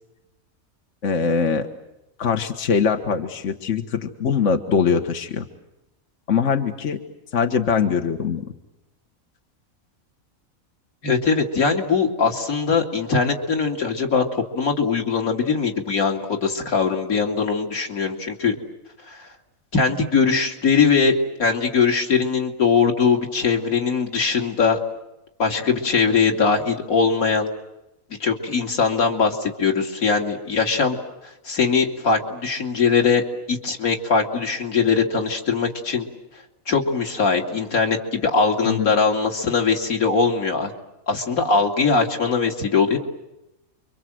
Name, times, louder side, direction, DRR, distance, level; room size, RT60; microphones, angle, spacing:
voice 1, 1.0-1.7 2.2-5.4 6.3-7.0 7.3-8.4 38.6-38.9, left 6 dB, 60° left, 5 dB, 1.7 m, -22 dB
voice 2, 11.0-14.2 14.5-18.6 19.1-19.2 19.7-21.1 21.4-24.8 25.4-27.5 28.2-31.0 31.5-36.1 36.7-40.7 41.1-43.0, left 5 dB, 90° left, 2 dB, 3.1 m, -21 dB
29.5 x 24.5 x 7.8 m, 0.92 s
omnidirectional pair, 1.5 m